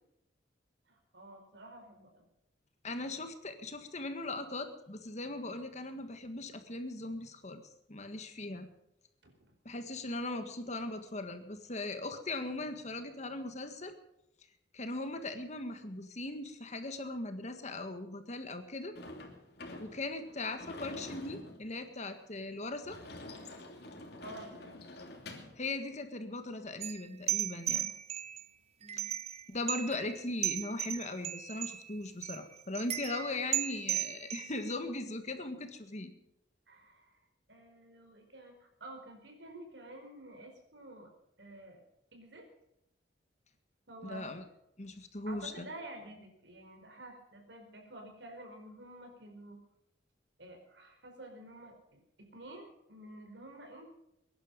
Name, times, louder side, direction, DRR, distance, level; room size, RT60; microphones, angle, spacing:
voice 1, 0.9-2.3 9.2-9.5 24.2-24.9 28.8-29.1 36.7-37.2 37.5-41.1 41.4-41.8 42.1-42.5 43.9-44.3 45.3-49.6 50.4-53.9, right 1 dB, 75° right, 4 dB, 4.5 m, -50 dB
voice 2, 2.8-7.6 7.9-8.7 9.7-13.9 14.7-19.0 19.8-23.0 25.6-27.9 28.9-29.1 29.5-36.1 44.0-44.4 44.8-45.7, left 2 dB, 40° left, 8 dB, 1.7 m, -39 dB
Sliding door / Slam, 19.0-25.6, left 2 dB, 60° left, 2.9 m, -48 dB
sound 1, 26.8-28.4 28.9-29.4 29.7-30.2 30.4-31.8 32.2-32.4 32.7-34.7, right 11 dB, 35° right, 0.5 m, -36 dB
22.0 x 11.0 x 5.3 m, 0.82 s
head